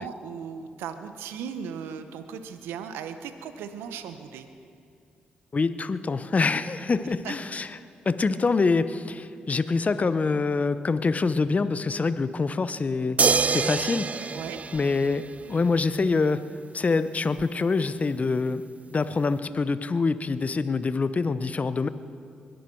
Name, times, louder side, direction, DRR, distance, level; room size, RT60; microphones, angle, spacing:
voice 1, 0.0-4.5 7.2-7.3 14.3-14.6, right 7 dB, 85° right, 9 dB, 0.7 m, -37 dB
voice 2, 5.5-7.8 8.0-13.2 13.5-14.4 14.7-16.5 16.7-18.6 18.9-21.9, left 4 dB, 40° left, 14 dB, 0.7 m, -25 dB
sound 1, 13.2-15.7 17.4-17.5, right 5 dB, 40° right, 0.3 m, -26 dB
21.5 x 11.5 x 4.6 m, 2.4 s
supercardioid pair, 50°, 4 cm